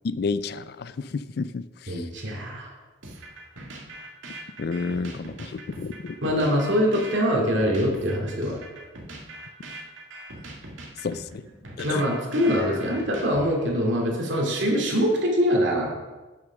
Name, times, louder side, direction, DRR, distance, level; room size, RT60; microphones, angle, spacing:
voice 1, 0.0-2.1 4.6-6.2 11.0-11.4 11.8-12.1, left 4 dB, 55° left, 14 dB, 0.3 m, -31 dB
voice 2, 1.9-2.7 6.2-8.6 11.8-15.9, equal, 65° right, -1 dB, 2.4 m, -23 dB
sound 1, 3.0-13.8, right 1 dB, 80° right, 2.0 m, -41 dB
8.8 x 6.4 x 6.1 m, 1.2 s
head